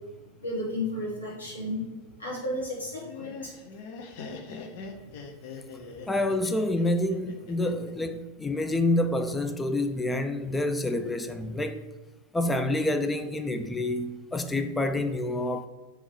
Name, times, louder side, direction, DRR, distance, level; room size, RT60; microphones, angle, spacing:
voice 1, 0.4-1.9 2.2-3.5 4.9-5.0, left 1 dB, 80° left, 1.1 m, -33 dB
Laughter, 2.9-7.9, left 4 dB, 50° left, 0.6 m, -42 dB
voice 2, 6.1-11.8 12.3-15.7, left 1 dB, 10° left, 0.3 m, -28 dB
3.6 x 3.0 x 4.7 m
figure-of-eight pair, 90°, 0 cm